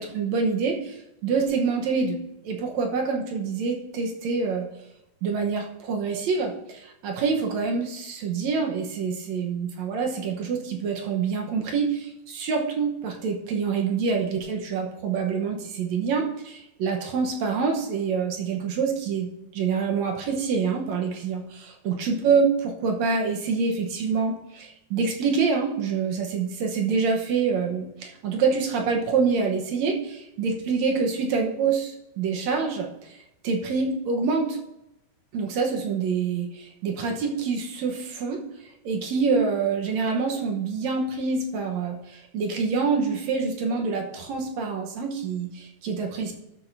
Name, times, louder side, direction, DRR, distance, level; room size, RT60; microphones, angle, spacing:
voice 1, 0.0-4.7 5.2-33.2 33.4-34.6 35.3-38.4 38.8-46.3, right 5 dB, 65° right, 2 dB, 2.0 m, -26 dB
12.5 x 7.6 x 2.6 m, 0.88 s
omnidirectional pair, 3.8 m